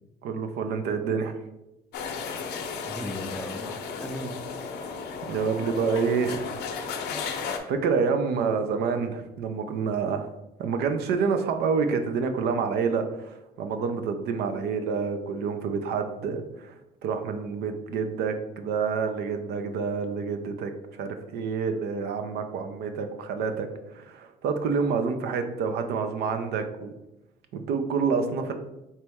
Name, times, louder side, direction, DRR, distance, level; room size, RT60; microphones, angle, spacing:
voice 1, 0.2-1.3 5.3-6.4 7.3-10.3 10.6-16.7 17.0-23.7 23.9-26.9 27.5-28.5, right 5 dB, 75° right, 7 dB, 0.6 m, -28 dB
sound 1, 1.9-7.6, left 5 dB, 75° left, 0.7 m, -34 dB
voice 2, 2.9-4.4 5.0-5.1, left 1 dB, 5° left, 3 dB, 0.4 m, -37 dB
4.3 x 3.0 x 3.5 m, 0.92 s
cardioid pair, 110°, 17 cm